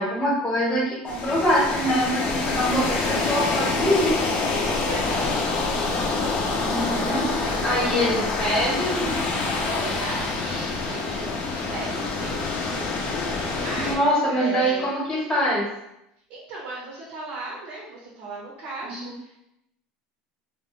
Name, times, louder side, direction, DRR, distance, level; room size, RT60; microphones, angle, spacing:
voice 1, 0.0-4.1 6.6-7.2 7.6-9.1 13.7-15.0 15.3-15.7 18.8-19.1, equal, 15° left, -6 dB, 0.8 m, -24 dB
sound 1, 1.1-14.0, left 3 dB, 50° left, 0.4 m, -26 dB
voice 2, 4.8-5.5 6.7-8.3 9.6-12.4 13.5-14.0 14.4-14.9 16.3-19.4, right 2 dB, 70° right, -4 dB, 0.7 m, -35 dB
2.2 x 2.1 x 2.9 m, 0.84 s
supercardioid pair, 110°, 3 cm